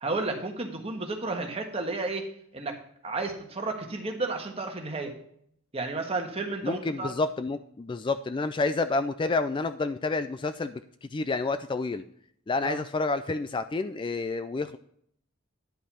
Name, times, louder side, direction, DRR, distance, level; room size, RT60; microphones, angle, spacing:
voice 1, 0.0-2.3 2.5-2.8 3.0-5.2 5.7-7.1 12.6-12.8, right 3 dB, 30° right, 3 dB, 1.5 m, -32 dB
voice 2, 6.6-12.0 12.5-14.8, left 3 dB, 25° left, 10 dB, 0.3 m, -29 dB
10.5 x 5.5 x 5.6 m, 0.67 s
head